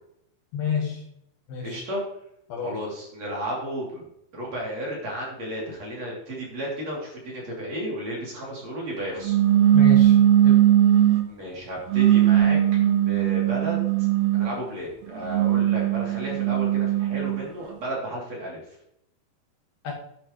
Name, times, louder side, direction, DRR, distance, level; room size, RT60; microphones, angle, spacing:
voice 1, 0.5-1.0 1.5-1.8 2.5-2.7 9.7-10.2 10.4-10.7 19.8-19.9, left 6 dB, 65° left, -1 dB, 3.1 m, -28 dB
voice 2, 1.6-2.0 2.6-4.0 4.3-9.3 11.3-12.6 13.1-13.8 14.3-18.6, right 1 dB, 40° right, -4 dB, 4.0 m, -33 dB
sound 1, 9.2-11.3 11.9-14.6 15.2-17.5, right 12 dB, 80° right, 3.2 m, -19 dB
11.5 x 10.0 x 3.2 m, 0.77 s
omnidirectional pair, 5.0 m